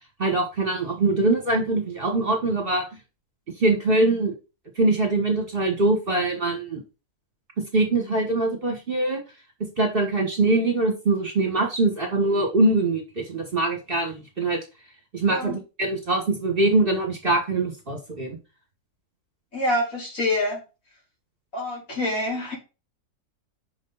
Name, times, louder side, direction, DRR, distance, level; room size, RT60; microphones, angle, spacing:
voice 1, 0.2-2.8 3.6-4.3 4.8-6.8 7.6-9.2 9.8-14.6 15.1-18.4, right 2 dB, 35° right, 2 dB, 1.6 m, -23 dB
voice 2, 15.3-15.6 19.5-20.6 21.5-22.6, left 1 dB, 55° left, -3 dB, 4.2 m, -26 dB
6.4 x 5.4 x 4.0 m, 0.29 s
omnidirectional pair, 1.7 m